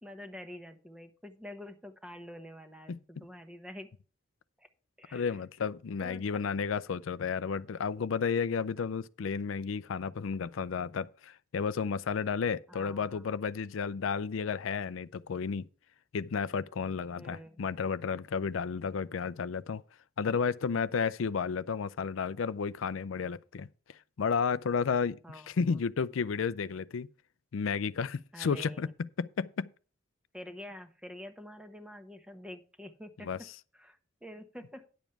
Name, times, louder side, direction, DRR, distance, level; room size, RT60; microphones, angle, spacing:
voice 1, 0.0-3.9 4.6-4.7 5.0-5.4 6.0-6.2 12.7-13.2 17.2-17.6 25.2-25.8 28.3-28.9 30.3-33.5 33.7-34.9, left 1 dB, 5° right, 1.0 m, -47 dB
voice 2, 5.1-15.6 16.1-19.8 20.2-23.7 24.2-25.2 25.5-27.1 27.5-28.9 29.2-29.7 33.2-33.4, left 6 dB, 90° left, 0.4 m, -32 dB
10.5 x 7.2 x 4.6 m
head